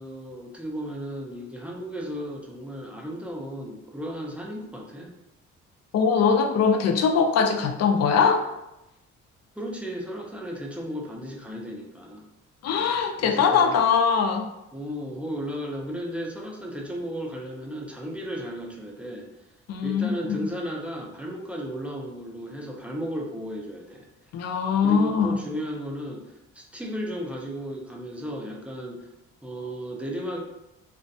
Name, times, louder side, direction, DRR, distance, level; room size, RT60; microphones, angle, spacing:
voice 1, 0.0-5.1 9.6-12.3 13.2-13.8 14.7-19.3 19.8-24.1 24.8-29.1 29.4-30.4, equal, 5° right, -1 dB, 0.4 m, -34 dB
voice 2, 5.9-8.4 12.6-14.4 19.7-20.5 24.3-25.4, left 6 dB, 55° left, 4 dB, 0.4 m, -22 dB
2.4 x 2.1 x 2.6 m, 0.91 s
cardioid pair, 90°, 30 cm